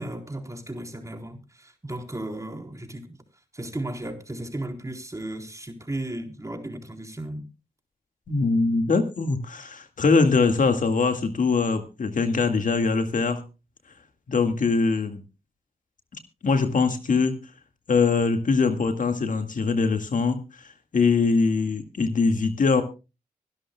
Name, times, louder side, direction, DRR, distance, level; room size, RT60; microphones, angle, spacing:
voice 1, 0.0-3.2 3.5-7.4, right 1 dB, 20° right, 3.8 m, -35 dB
voice 2, 8.3-13.4 14.3-15.2 16.4-17.4 17.9-22.8, left 4 dB, 60° left, 1.9 m, -22 dB
24.5 x 12.0 x 2.3 m
cardioid pair, 55°, 15 cm